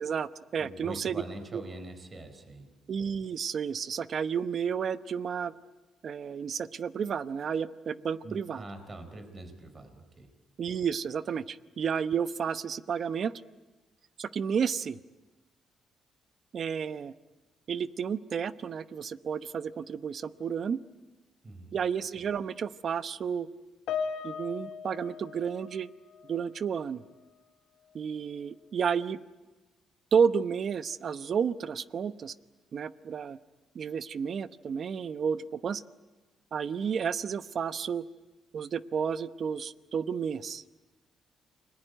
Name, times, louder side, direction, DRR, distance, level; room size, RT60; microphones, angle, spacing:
voice 1, 0.0-1.1 1.5-1.6 2.9-5.5 6.0-8.6 10.6-13.3 14.2-15.0 16.5-17.1 17.7-20.8 21.7-23.5 24.2-25.9 26.3-27.0 27.9-29.2 30.1-32.3 32.7-33.4 33.7-35.8 36.5-38.0 38.5-40.6, right 7 dB, 55° right, 13 dB, 0.9 m, -31 dB
voice 2, 0.6-2.8 8.2-10.3 21.4-21.8, right 2 dB, 30° right, 8 dB, 4.3 m, -44 dB
Piano, 23.9-26.5 26.8-27.1 27.9-28.0, left 6 dB, 80° left, 1.7 m, -38 dB
29.5 x 21.5 x 9.3 m, 1.2 s
cardioid pair, 90°, 0 cm